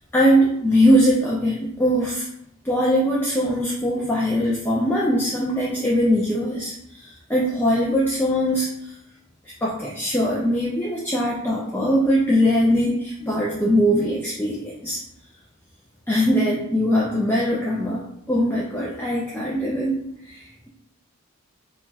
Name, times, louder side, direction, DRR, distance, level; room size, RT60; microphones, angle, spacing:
voice 1, 0.1-2.3 2.6-8.9 9.6-15.0 16.1-18.0 18.3-20.0 20.3-20.5, equal, 10° left, -5 dB, 0.4 m, -21 dB
4.7 x 2.3 x 2.7 m, 0.77 s
head